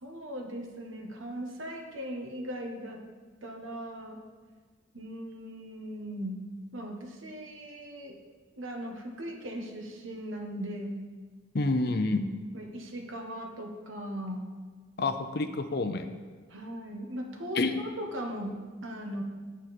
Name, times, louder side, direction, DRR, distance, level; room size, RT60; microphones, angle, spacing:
voice 1, 0.0-3.0 3.4-4.2 4.9-6.4 6.7-8.2 8.6-11.0 12.5-14.5 16.5-19.2, equal, 80° right, 2 dB, 1.5 m, -38 dB
voice 2, 11.5-12.2 15.0-16.2 17.5-17.8, left 3 dB, 55° left, 9 dB, 0.6 m, -28 dB
9.1 x 8.7 x 4.3 m, 1.4 s
head